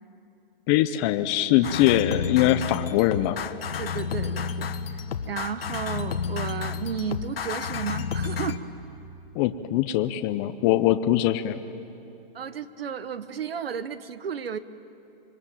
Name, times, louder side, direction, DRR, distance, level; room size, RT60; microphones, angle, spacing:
voice 1, 0.7-3.4 9.3-11.6, left 13 dB, 25° left, 9 dB, 0.7 m, -22 dB
sound 1, 1.6-8.6, left 6 dB, 80° left, 1.4 m, -31 dB
voice 2, 3.8-4.7 5.3-8.6 12.3-14.6, right 7 dB, 80° right, 14 dB, 1.3 m, -33 dB
26.0 x 22.5 x 8.9 m, 2.9 s
hypercardioid pair, 145°, 29 cm